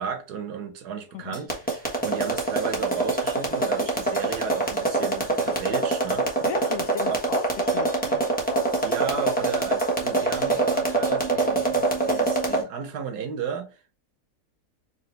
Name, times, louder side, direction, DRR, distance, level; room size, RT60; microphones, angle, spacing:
voice 1, 0.0-6.5 7.1-7.4 8.8-13.9, right 7 dB, 90° right, 1.4 m, -34 dB
sound 1, 1.3-12.6, right 2 dB, 5° left, 1.0 m, -24 dB
voice 2, 6.5-8.7, left 7 dB, 65° left, 1.0 m, -35 dB
4.9 x 2.7 x 3.1 m
omnidirectional pair, 1.7 m